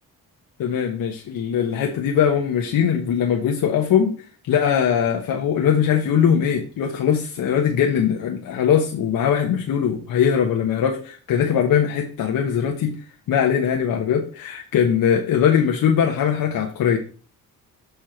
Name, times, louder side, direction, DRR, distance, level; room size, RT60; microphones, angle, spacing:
voice 1, 0.6-4.2 4.5-13.0 13.3-17.0, left 8 dB, 75° left, 1 dB, 1.1 m, -21 dB
6.9 x 4.5 x 4.5 m, 0.39 s
cardioid pair, 75°, 34 cm